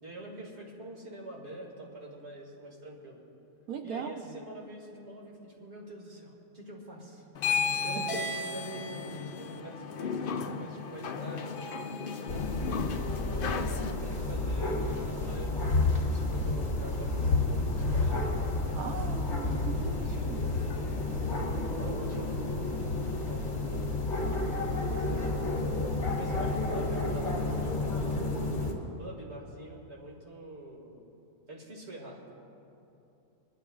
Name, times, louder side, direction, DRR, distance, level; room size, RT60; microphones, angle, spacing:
voice 1, 0.0-3.2 3.8-11.6 12.3-15.6 15.9-18.2 18.5-18.8 19.7-21.3 21.8-22.6 22.9-23.5 24.5-28.3 29.0-31.0 31.5-32.2, right 2 dB, 45° right, -1 dB, 2.2 m, -45 dB
voice 2, 3.7-4.3 18.7-20.4, right 6 dB, 75° right, 5 dB, 1.3 m, -39 dB
sound 1, 7.3-13.9, left 5 dB, 80° left, 0.4 m, -34 dB
sound 2, 12.3-28.7, left 2 dB, 50° left, 2.3 m, -30 dB
22.5 x 11.5 x 2.4 m, 2.7 s
omnidirectional pair, 1.6 m